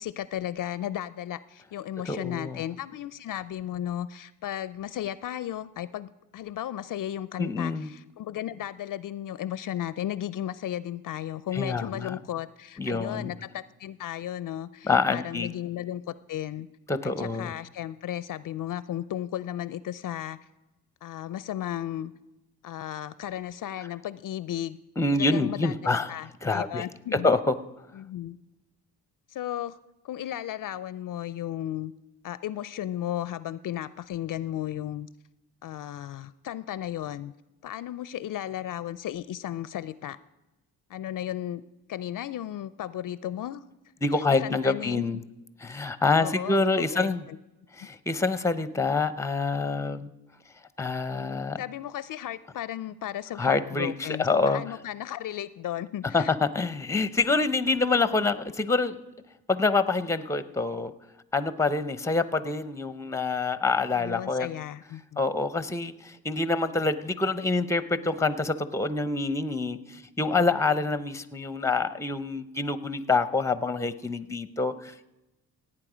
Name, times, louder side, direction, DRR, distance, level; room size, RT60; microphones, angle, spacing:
voice 1, 0.0-16.7 17.0-20.4 21.0-22.1 22.6-24.8 25.1-27.3 27.9-28.4 29.3-29.8 30.0-31.9 32.2-35.1 35.6-37.3 37.6-40.2 40.9-41.6 41.9-43.6 44.3-45.0 46.2-47.4 47.8-47.9 51.6-56.3 63.9-65.2, left 12 dB, 55° left, 17 dB, 0.5 m, -35 dB
voice 2, 2.1-2.6 7.4-7.9 11.5-12.2 12.8-13.3 14.8-15.5 16.9-17.5 25.0-26.1 26.4-26.8 27.1-27.6 44.0-45.2 45.6-47.2 47.7-50.1 50.8-51.6 53.4-54.6 56.1-59.0 59.5-60.9 61.3-64.5 65.2-75.1, left 3 dB, 10° left, 14 dB, 0.7 m, -26 dB
17.0 x 8.9 x 5.0 m, 1.0 s
cardioid pair, 75°, 38 cm